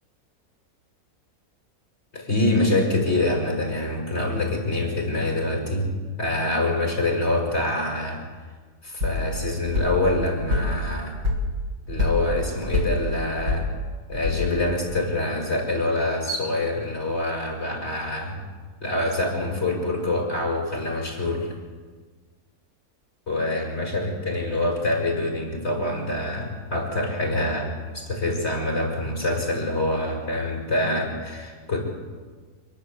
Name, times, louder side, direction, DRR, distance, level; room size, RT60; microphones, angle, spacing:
voice 1, 2.1-5.9 6.2-8.2 8.8-11.2 11.9-13.7 14.1-18.4 18.8-21.5 23.3-31.8, left 2 dB, 45° left, 0 dB, 5.8 m, -25 dB
sound 1, 9.0-14.8, left 2 dB, 55° right, 3.1 m, -27 dB
29.0 x 11.0 x 8.3 m, 1.5 s
omnidirectional pair, 1.5 m